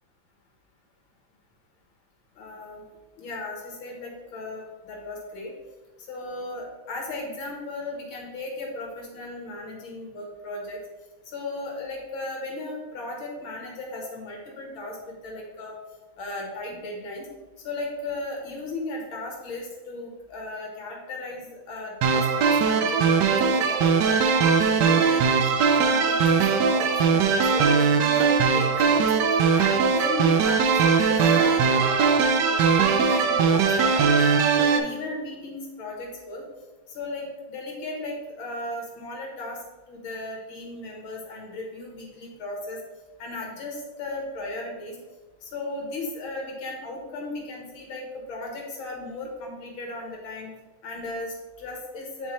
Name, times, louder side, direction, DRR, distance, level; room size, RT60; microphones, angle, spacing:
voice 1, 2.4-2.8 3.2-5.5 6.1-10.8 11.3-15.8 16.2-17.3 17.6-25.3 25.7-29.1 29.5-32.2 32.7-34.4 34.7-36.4 36.9-39.6 39.9-42.8 43.2-45.0 45.4-50.5 50.8-52.3, left 2 dB, 75° left, 0 dB, 2.0 m, -36 dB
sound 1, 22.0-34.8, right 5 dB, 70° right, 1.1 m, -20 dB
9.1 x 4.2 x 3.1 m, 1.2 s
omnidirectional pair, 2.3 m